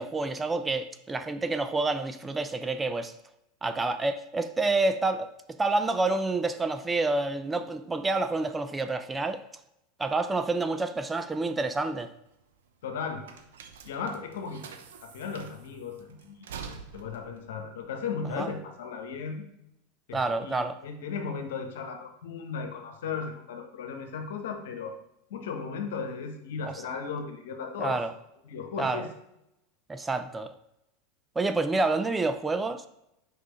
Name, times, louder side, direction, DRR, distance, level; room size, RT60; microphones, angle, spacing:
voice 1, 0.0-3.1 3.6-5.3 5.6-9.4 10.0-12.1 18.3-18.5 20.1-20.8 27.8-28.1 28.8-29.1 29.9-30.5 31.4-32.8, right 3 dB, 15° right, 0.5 m, -28 dB
sound 1, 12.0-18.8, right 6 dB, 75° right, 0.8 m, -47 dB
voice 2, 12.8-13.2 13.8-14.6 15.0-16.4 16.9-19.4 20.1-25.0 25.3-28.0 28.4-29.1, left 5 dB, 70° left, 1.2 m, -36 dB
8.1 x 5.5 x 3.2 m
hypercardioid pair, 85°, 0 cm